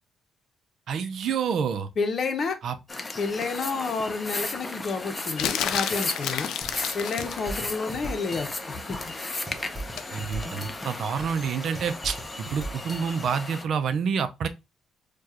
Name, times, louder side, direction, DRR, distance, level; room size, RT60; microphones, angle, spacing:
voice 1, 0.9-1.9 2.6-2.8 10.1-14.5, right 6 dB, 65° right, 0.5 m, -28 dB
voice 2, 2.0-2.6 3.2-9.1, left 4 dB, 50° left, 0.8 m, -30 dB
sound 1, 2.9-13.6, left 2 dB, 20° left, 0.6 m, -35 dB
sound 2, 5.4-7.5 10.0-10.2, left 10 dB, 85° left, 0.4 m, -30 dB
sound 3, 6.6-13.5, right 2 dB, 20° right, 1.1 m, -40 dB
4.5 x 2.3 x 2.9 m
cardioid pair, 90°, 0 cm